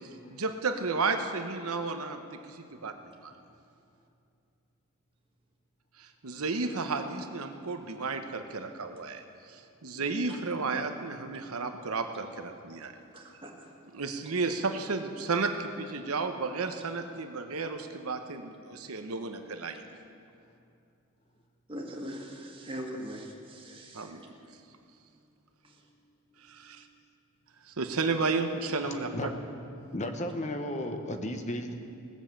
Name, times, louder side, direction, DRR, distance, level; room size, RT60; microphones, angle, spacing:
voice 1, 0.0-3.3 6.0-12.9 13.9-19.8 23.9-24.2 26.4-26.9 27.6-29.3, right 4 dB, 70° right, 7 dB, 1.0 m, -33 dB
voice 2, 13.1-13.5 21.7-24.1, equal, 25° right, -1 dB, 1.7 m, -40 dB
voice 3, 26.3-26.7 28.8-29.3 29.8-31.7, left 1 dB, 30° left, 6 dB, 0.9 m, -35 dB
18.0 x 7.2 x 7.4 m, 2.5 s
head